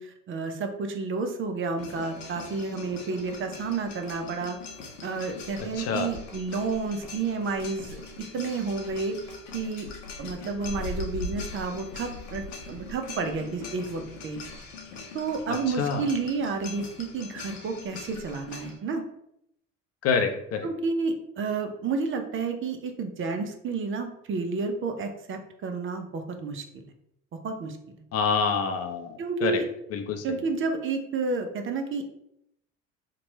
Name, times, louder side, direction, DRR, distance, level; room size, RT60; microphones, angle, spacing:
voice 1, 0.0-4.6 5.0-9.9 10.2-14.4 15.1-19.0 20.6-26.8 27.4-28.0 29.2-29.6 30.2-32.0, right 4 dB, 35° right, 5 dB, 0.5 m, -31 dB
sound 1, 1.8-18.8, left 3 dB, 80° left, 0.7 m, -41 dB
voice 2, 5.7-6.1 15.8-16.1 20.0-20.7 28.1-29.6 29.9-30.4, left 5 dB, 40° left, 6 dB, 0.5 m, -27 dB
2.9 x 2.2 x 4.0 m, 0.77 s
hypercardioid pair, 65°, 38 cm